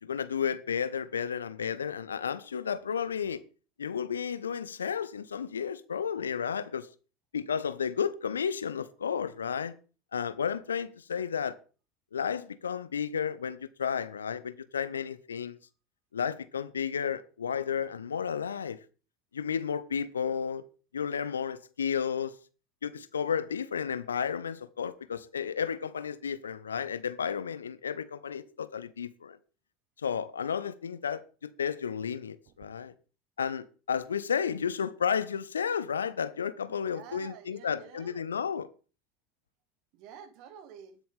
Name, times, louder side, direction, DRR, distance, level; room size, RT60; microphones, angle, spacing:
voice 1, 0.0-3.4 3.8-6.9 7.3-9.7 10.1-11.6 12.1-15.6 16.1-18.8 19.3-20.6 20.9-22.4 22.8-29.4 30.0-32.9 33.4-38.7, left 7 dB, 75° left, 0.6 m, -32 dB
voice 2, 36.7-38.3 39.9-41.0, right 8 dB, 50° right, 1.2 m, -49 dB
19.5 x 7.1 x 3.5 m
figure-of-eight pair, 75°, 0 cm